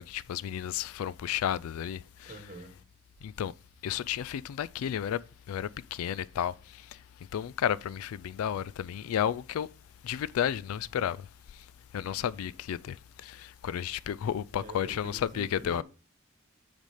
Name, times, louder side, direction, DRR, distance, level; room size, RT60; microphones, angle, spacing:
voice 1, 0.0-2.3 3.2-3.5 3.8-5.2 5.5-7.0 7.3-9.7 10.0-11.7 11.9-15.8, left 9 dB, 80° left, 0.3 m, -32 dB
voice 2, 2.2-2.7 14.5-15.8, right 2 dB, 35° right, 1.3 m, -46 dB
6.3 x 4.2 x 4.8 m
head